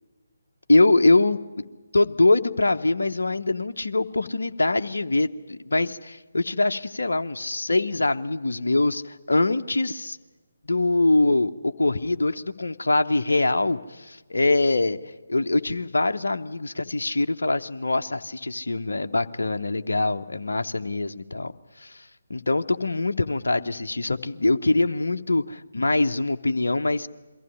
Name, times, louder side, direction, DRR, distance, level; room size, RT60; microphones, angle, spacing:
voice 1, 0.7-1.7 1.9-10.2 10.7-21.5 21.8-27.1, left 2 dB, 70° left, 7 dB, 0.8 m, -23 dB
22.5 x 15.0 x 10.0 m, 1.3 s
figure-of-eight pair, 145°, 0 cm